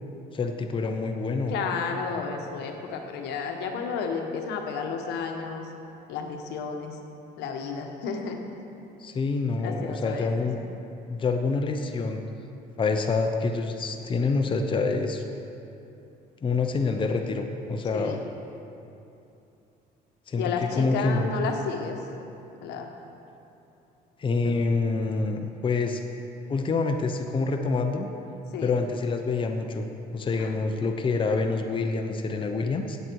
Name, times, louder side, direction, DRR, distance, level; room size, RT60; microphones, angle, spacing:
voice 1, 0.3-1.5 9.0-10.6 11.1-12.2 12.8-15.2 16.4-18.2 20.3-21.3 24.2-26.0 26.5-28.1 28.6-29.9 30.1-33.0, left 3 dB, 30° left, 5 dB, 0.8 m, -27 dB
voice 2, 1.5-5.7 6.1-7.0 7.4-8.4 9.6-10.3 17.9-18.2 20.3-22.0 22.6-22.9 24.4-24.6 28.5-28.7 30.4-30.5, left 5 dB, 85° left, 3 dB, 1.3 m, -32 dB
16.5 x 7.9 x 4.7 m, 2.8 s
cardioid pair, 110°, 17 cm